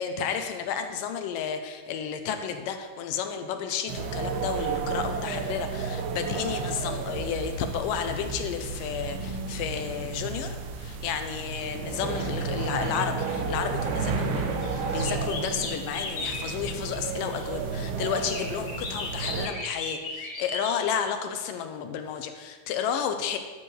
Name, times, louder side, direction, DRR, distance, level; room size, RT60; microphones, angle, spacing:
voice 1, 0.0-23.4, left 7 dB, 75° left, 7 dB, 2.2 m, -32 dB
sound 1, 3.9-19.5, right 4 dB, 70° right, 2.1 m, -32 dB
sound 2, 12.0-13.6 14.2-17.5 18.1-20.9, left 3 dB, 50° left, 1.2 m, -37 dB
12.0 x 4.3 x 6.4 m, 1.4 s
omnidirectional pair, 4.2 m